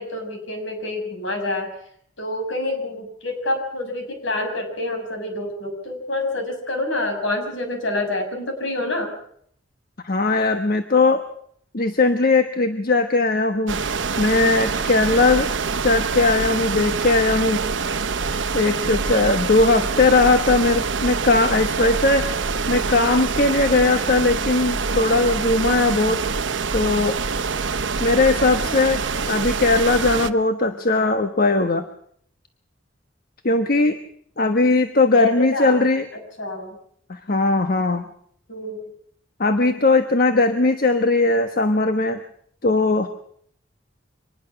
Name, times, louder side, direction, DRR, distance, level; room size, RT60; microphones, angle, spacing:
voice 1, 0.0-1.7 2.2-9.1 35.1-35.8 36.1-36.8 38.5-38.9, left 2 dB, 70° left, 4 dB, 6.7 m, -27 dB
voice 2, 10.0-11.2 11.7-13.8 14.2-15.5 15.8-17.6 18.5-22.3 22.7-26.2 26.7-27.2 28.0-31.8 33.4-34.0 34.4-36.0 37.1-38.0 39.4-42.2 42.6-43.1, left 3 dB, 50° left, 7 dB, 1.2 m, -19 dB
sound 1, 13.7-30.3, right 4 dB, 65° right, 1.0 m, -25 dB
25.0 x 20.0 x 5.9 m, 0.64 s
head